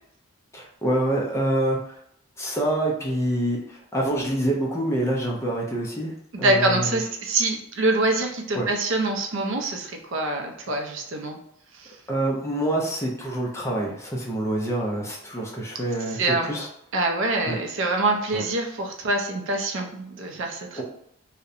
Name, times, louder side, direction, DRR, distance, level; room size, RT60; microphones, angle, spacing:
voice 1, 0.5-1.8 2.4-6.9 8.6-8.7 12.1-16.7 17.5-17.6 18.3-18.4 20.8-20.9, right 1 dB, 15° left, -1 dB, 0.4 m, -26 dB
voice 2, 6.4-11.4 11.7-12.0 16.1-16.5 16.9-20.8, right 2 dB, 60° right, 3 dB, 0.4 m, -25 dB
2.7 x 2.1 x 2.4 m, 0.74 s
head